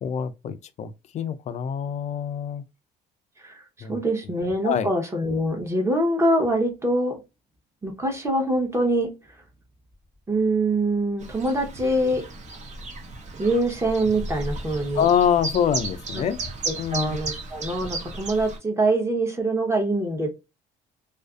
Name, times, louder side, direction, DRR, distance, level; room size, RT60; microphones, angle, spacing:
voice 1, 0.0-2.6 3.8-4.0 4.6-4.9 14.9-16.4 16.8-17.2, left 8 dB, 45° left, 0.4 m, -25 dB
voice 2, 3.4-7.2 7.8-9.1 10.3-12.2 13.4-15.1 16.2-16.3 16.7-20.3, right 1 dB, 15° right, 0.8 m, -24 dB
Chirp tweet, 11.2-18.6, right 2 dB, 45° right, 0.7 m, -34 dB
2.4 x 2.4 x 2.3 m
cardioid pair, 110°, 17 cm